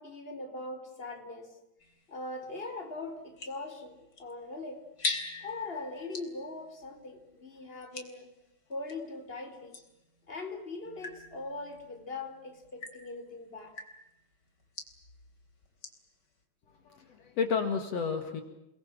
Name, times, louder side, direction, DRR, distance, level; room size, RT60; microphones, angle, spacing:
voice 1, 0.0-1.6 2.1-4.9 5.4-8.3 8.7-9.8 10.3-13.8, left 2 dB, 20° left, 5 dB, 4.1 m, -41 dB
sound 1, 1.8-9.1 9.7-16.1, left 3 dB, 35° left, 4.0 m, -44 dB
voice 2, 16.8-18.4, left 5 dB, 60° left, 6 dB, 3.0 m, -31 dB
30.0 x 21.5 x 7.6 m, 0.92 s
omnidirectional pair, 3.4 m